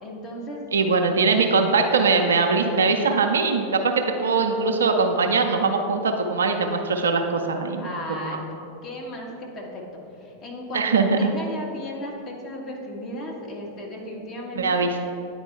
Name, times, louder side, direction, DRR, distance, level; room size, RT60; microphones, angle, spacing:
voice 1, 0.0-0.6 7.8-8.4 8.8-9.8 10.2-14.9, left 1 dB, 25° left, -2 dB, 1.2 m, -35 dB
voice 2, 0.7-8.4 10.7-11.3 14.6-15.0, right 4 dB, 70° right, 5 dB, 0.5 m, -21 dB
9.4 x 4.4 x 3.3 m, 2.8 s
figure-of-eight pair, 90°, 0 cm